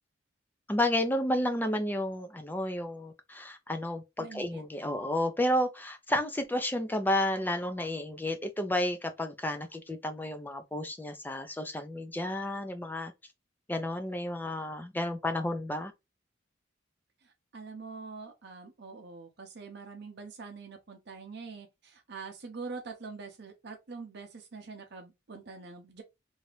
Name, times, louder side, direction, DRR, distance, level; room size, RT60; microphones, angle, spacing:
voice 1, 0.7-13.1 13.7-15.9, left 1 dB, 10° left, 0.4 m, -31 dB
voice 2, 4.2-4.6 17.2-26.0, right 4 dB, 60° right, 0.6 m, -44 dB
2.7 x 2.4 x 3.2 m
head